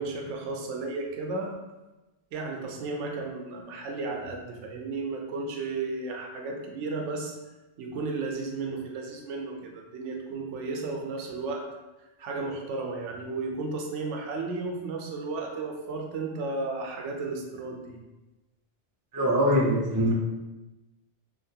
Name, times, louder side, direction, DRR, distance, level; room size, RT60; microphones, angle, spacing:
voice 1, 0.0-1.5 2.3-7.3 7.8-11.7 12.2-18.0, right 3 dB, 85° right, 1 dB, 0.9 m, -34 dB
voice 2, 19.1-20.1, equal, 30° right, -4 dB, 0.4 m, -23 dB
2.9 x 2.5 x 2.7 m, 1.1 s
omnidirectional pair, 1.2 m